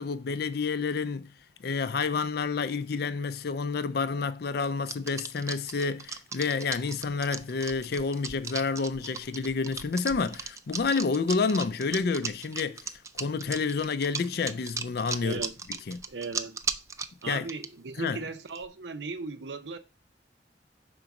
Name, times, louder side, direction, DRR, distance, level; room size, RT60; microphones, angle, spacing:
voice 1, 0.0-1.3 1.6-12.9 13.1-15.4 15.9-16.0 17.3-17.5 18.0-18.2, left 4 dB, 60° left, 0.4 m, -29 dB
sound 1, 4.9-17.6 18.5-18.7, right 5 dB, 15° right, 0.3 m, -36 dB
voice 2, 15.2-15.5 16.1-16.6 17.2-19.8, right 3 dB, 80° right, 0.7 m, -37 dB
5.2 x 3.9 x 5.9 m
head